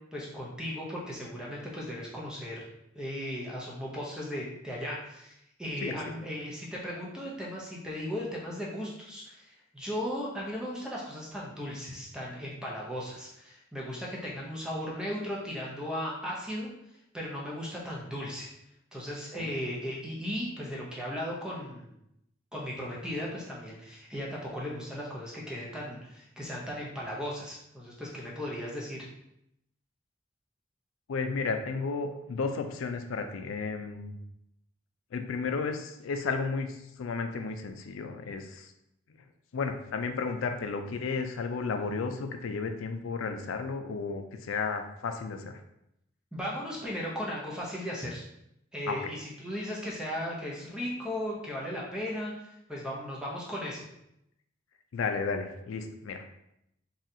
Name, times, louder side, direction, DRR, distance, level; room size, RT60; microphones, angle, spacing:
voice 1, 0.1-2.6 2.9-16.7 17.1-18.5 18.9-21.9 22.5-29.1 46.3-48.2 48.7-53.8, equal, 5° right, -4 dB, 0.5 m, -36 dB
voice 2, 31.1-34.2 35.1-38.7 39.5-45.6 48.9-49.0 54.9-56.2, left 4 dB, 80° left, 6 dB, 0.4 m, -33 dB
4.0 x 2.4 x 2.6 m, 0.80 s
head